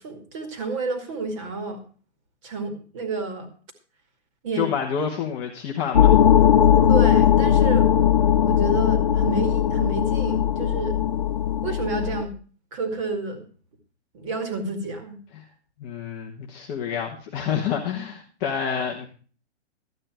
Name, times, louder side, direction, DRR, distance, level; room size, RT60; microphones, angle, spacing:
voice 1, 0.0-1.8 2.4-3.5 4.4-4.7 6.9-8.0 8.4-11.0 11.6-12.3 12.7-13.4 14.1-15.2, right 3 dB, 25° right, 6 dB, 2.3 m, -30 dB
voice 2, 4.6-6.1 15.3-15.4 15.8-19.1, left 7 dB, 15° left, -1 dB, 1.0 m, -28 dB
sound 1, 5.9-12.2, left 9 dB, 40° left, 0.6 m, -18 dB
13.0 x 9.0 x 4.4 m, 0.41 s
hypercardioid pair, 175°, 34 cm